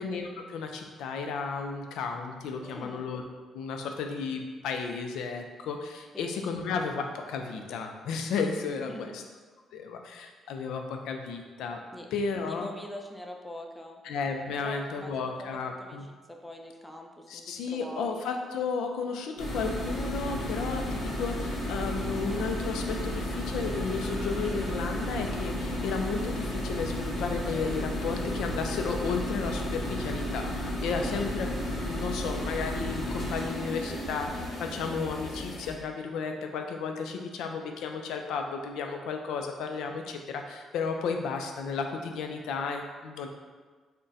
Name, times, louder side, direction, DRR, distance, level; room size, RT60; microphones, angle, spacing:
voice 1, 0.0-3.2 3.5-9.2 9.7-11.8 12.1-12.7 14.0-16.1 17.3-31.5 31.8-43.3, left 5 dB, 85° left, 4 dB, 0.4 m, -33 dB
voice 2, 2.6-3.1 6.1-6.3 8.9-9.2 11.9-12.1 12.4-14.0 14.6-16.0 16.3-18.3 30.9-31.4, equal, 5° left, 2 dB, 0.4 m, -43 dB
sound 1, 19.4-35.7, equal, 65° left, 1.0 m, -33 dB
3.6 x 2.1 x 4.0 m, 1.4 s
cardioid pair, 90°, 0 cm